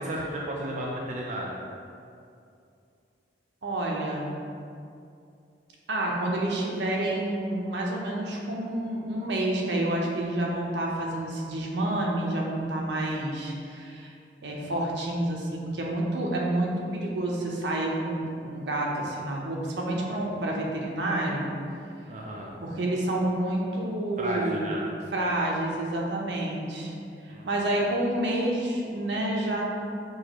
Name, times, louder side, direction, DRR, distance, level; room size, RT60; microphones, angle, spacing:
voice 1, 0.0-1.6 22.1-22.5 24.2-24.8 27.3-27.5, right 1 dB, 45° right, -3 dB, 0.4 m, -33 dB
voice 2, 3.6-4.4 5.9-14.1 14.4-21.5 22.6-24.7 25.1-26.9 27.2-29.6, right 1 dB, 80° right, -2 dB, 0.7 m, -29 dB
6.3 x 2.4 x 2.9 m, 2.5 s
head